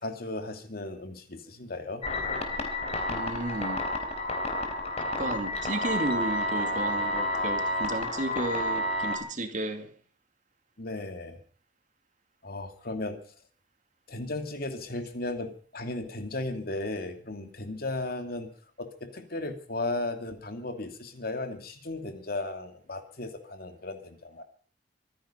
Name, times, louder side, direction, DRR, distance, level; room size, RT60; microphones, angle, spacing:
voice 1, 0.0-2.0 10.8-11.4 12.4-13.2 14.1-18.5 18.8-24.4, left 2 dB, 55° left, 2.6 m, -35 dB
sound 1, 2.0-9.2, left 1 dB, 35° left, 3.5 m, -30 dB
voice 2, 3.1-3.8 5.0-9.9, right 1 dB, 45° right, 2.5 m, -33 dB
25.0 x 9.8 x 5.6 m
head